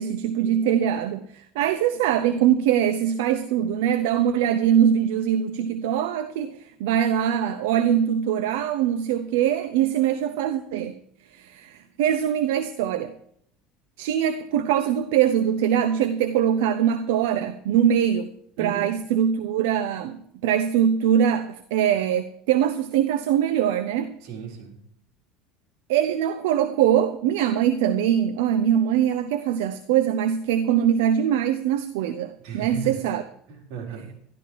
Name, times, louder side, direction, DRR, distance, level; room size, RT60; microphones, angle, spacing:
voice 1, 0.0-11.0 11.3-13.1 14.0-24.2 25.9-33.2, right 9 dB, 85° right, 0.8 m, -22 dB
voice 2, 18.6-18.9 24.2-24.7 32.4-33.0 33.5-34.1, right 7 dB, 65° right, 4.4 m, -35 dB
12.5 x 12.5 x 4.7 m
supercardioid pair, 125°, 0 cm